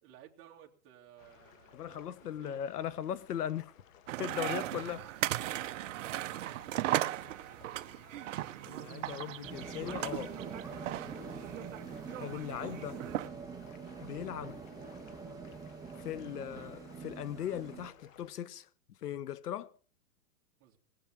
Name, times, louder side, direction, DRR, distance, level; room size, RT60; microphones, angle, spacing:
voice 1, 0.0-2.6 5.7-7.2 20.6-20.8, right 12 dB, 30° right, 2.3 m, -57 dB
sound 1, 1.2-18.3, left 8 dB, 60° left, 1.6 m, -60 dB
voice 2, 1.7-3.7 4.2-5.1 8.7-10.4 12.2-13.0 14.0-14.6 16.0-18.7 19.0-19.7, left 10 dB, 85° left, 1.2 m, -38 dB
sound 2, 4.1-13.3, right 14 dB, 55° right, 0.8 m, -37 dB
sound 3, 9.4-17.9, right 5 dB, 10° right, 1.2 m, -45 dB
20.0 x 7.4 x 7.5 m
hypercardioid pair, 150°, 45 cm